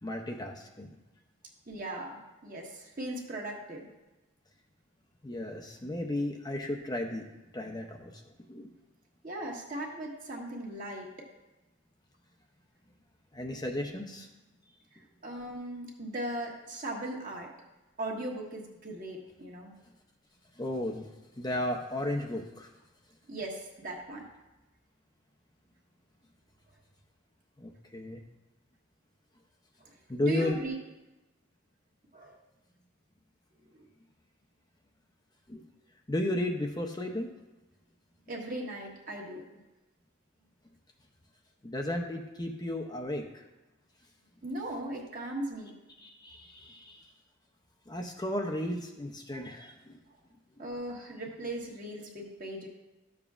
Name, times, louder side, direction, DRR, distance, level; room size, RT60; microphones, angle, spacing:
voice 1, 0.0-0.9 5.2-7.3 7.5-8.2 8.5-8.7 13.3-14.3 20.5-22.7 27.6-28.2 30.1-30.6 35.5-35.7 36.1-37.3 41.6-43.4 46.0-47.1 47.9-50.0 50.6-50.7, left 1 dB, 20° left, 2 dB, 0.6 m, -34 dB
voice 2, 1.7-3.9 9.2-11.1 14.9-17.5 18.0-19.7 23.3-24.2 29.8-30.8 32.1-32.3 33.7-33.9 38.3-39.4 44.4-45.7 50.6-52.7, right 1 dB, 40° right, -1 dB, 1.5 m, -38 dB
13.0 x 7.0 x 2.4 m, 1.0 s
head